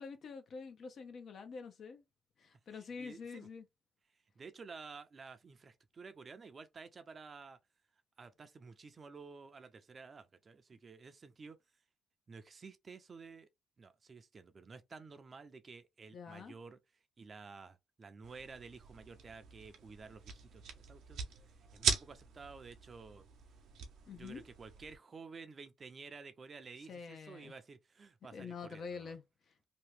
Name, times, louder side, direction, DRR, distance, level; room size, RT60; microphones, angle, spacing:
voice 1, 0.0-2.0 2.4-3.7 16.1-16.5 24.1-24.4 26.9-27.5 28.3-29.2, left 5 dB, 60° left, 0.8 m, -46 dB
voice 2, 2.7-3.5 4.4-7.6 8.2-11.6 12.3-13.5 13.8-16.8 17.2-21.3 21.7-23.2 24.1-29.2, right 4 dB, 40° right, 0.6 m, -52 dB
sound 1, 18.2-24.9, right 6 dB, 80° right, 0.7 m, -41 dB
2.9 x 2.4 x 3.4 m
cardioid pair, 90°, 0 cm